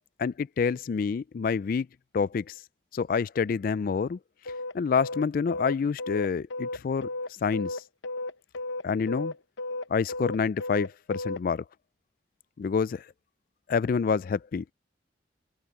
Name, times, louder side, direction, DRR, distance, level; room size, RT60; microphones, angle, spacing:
voice 1, 0.2-1.9 2.1-2.6 2.9-4.2 4.7-7.1 7.4-7.8 8.8-9.3 9.9-11.6 12.6-13.0 13.7-14.6, left 5 dB, 50° left, 0.3 m, -27 dB
sound 1, 4.4-11.4, left 2 dB, 80° left, 0.8 m, -34 dB
head